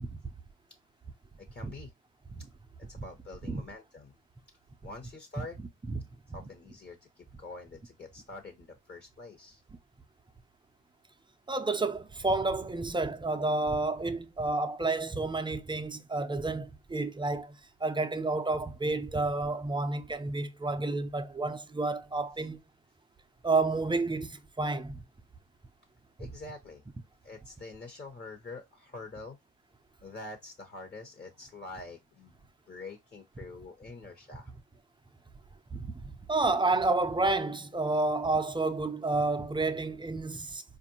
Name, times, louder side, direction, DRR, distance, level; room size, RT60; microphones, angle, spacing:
voice 1, 1.4-1.9 2.9-4.1 4.8-5.6 6.3-9.6 26.2-26.8 27.2-29.4 30.0-32.4 32.7-34.5, left 3 dB, 35° left, 1.1 m, -46 dB
voice 2, 11.5-22.6 23.4-25.0 35.7-40.6, right 3 dB, 15° right, 0.4 m, -30 dB
4.4 x 2.5 x 2.8 m
cardioid pair, 90°, 30 cm